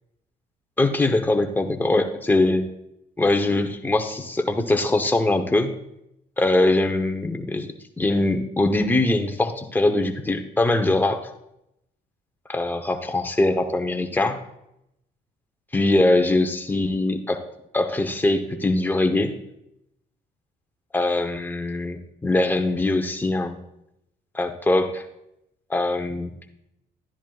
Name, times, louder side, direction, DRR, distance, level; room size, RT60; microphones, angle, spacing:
voice 1, 0.8-2.6 3.2-5.7 6.4-7.7 8.0-11.3 12.5-14.4 15.7-17.4 17.7-19.3 20.9-23.6 24.3-25.0 25.7-26.5, left 2 dB, 10° left, 5 dB, 0.9 m, -22 dB
12.5 x 10.0 x 2.4 m, 0.82 s
cardioid pair, 110°, 17 cm